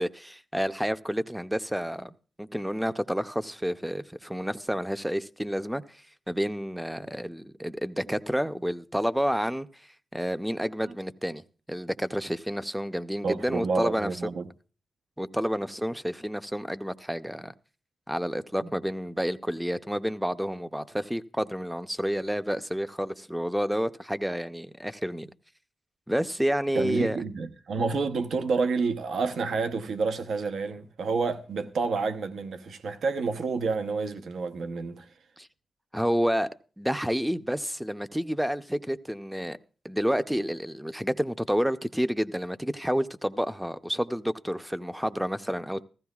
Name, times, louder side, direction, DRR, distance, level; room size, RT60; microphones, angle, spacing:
voice 1, 0.0-6.0 6.3-9.7 10.1-14.1 15.2-17.5 18.1-25.3 26.1-27.2 35.4-35.5 35.9-36.5 36.8-39.6 39.8-45.8, equal, 5° right, 0.5 m, -29 dB
voice 2, 13.2-14.5 26.7-35.1, right 4 dB, 90° right, 0.8 m, -29 dB
15.0 x 15.0 x 2.3 m
wide cardioid pair, 100°, 0 cm